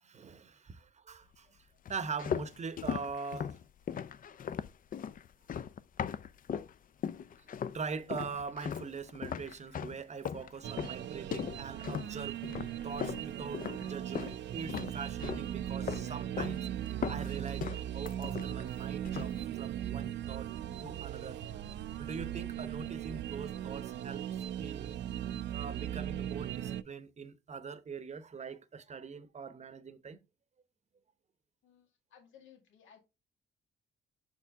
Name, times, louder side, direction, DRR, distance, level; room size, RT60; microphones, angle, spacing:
voice 1, 0.0-3.6 7.4-7.5 7.7-12.5 12.8-21.4 22.0-25.0 25.5-30.2, right 5 dB, 35° right, 0.8 m, -43 dB
sound 1, 1.8-6.7 7.0-7.8 8.1-14.4 14.7-15.5 15.8-16.6 16.9-18.7 19.0-19.4, left 8 dB, 45° left, 0.5 m, -38 dB
sound 2, 10.6-26.8, right 11 dB, 65° right, 0.4 m, -38 dB
voice 2, 31.6-33.0, left 8 dB, 75° left, 1.8 m, -59 dB
6.9 x 4.6 x 3.5 m
cardioid pair, 90°, 20 cm